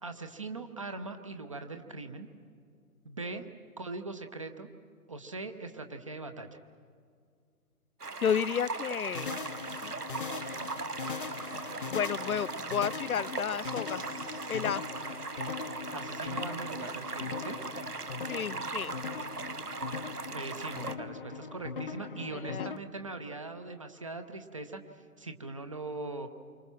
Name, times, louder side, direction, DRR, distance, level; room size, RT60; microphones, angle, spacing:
voice 1, 0.0-2.3 3.0-3.4 3.8-4.7 5.1-6.6 15.9-17.6 20.3-26.3, right 3 dB, 20° right, 7 dB, 0.7 m, -41 dB
sound 1, 8.0-20.9, right 3 dB, 85° right, 1.2 m, -39 dB
voice 2, 8.2-9.4 9.8-9.9 11.9-14.0 14.5-14.8 18.3-18.9 22.4-22.7, left 8 dB, 70° left, 22 dB, 0.6 m, -31 dB
sound 2, 9.2-22.8, left 5 dB, 35° left, 0.7 m, -40 dB
28.5 x 25.0 x 6.0 m, 2.1 s
figure-of-eight pair, 140°, 45 cm